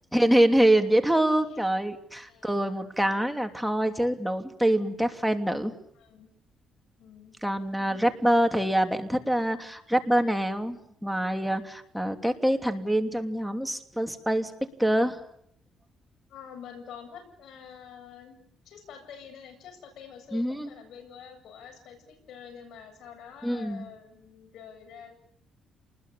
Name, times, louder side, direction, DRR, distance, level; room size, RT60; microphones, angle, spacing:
voice 1, 0.1-5.7 7.4-14.5 14.8-15.2 20.3-20.7 23.4-23.9, right 1 dB, 5° right, 6 dB, 3.0 m, -25 dB
voice 2, 6.0-6.3 7.0-7.4 7.9-8.0 16.3-18.4 18.6-25.1, left 7 dB, 75° left, 5 dB, 7.9 m, -47 dB
28.5 x 21.0 x 8.6 m, 0.69 s
cardioid pair, 90°, 0 cm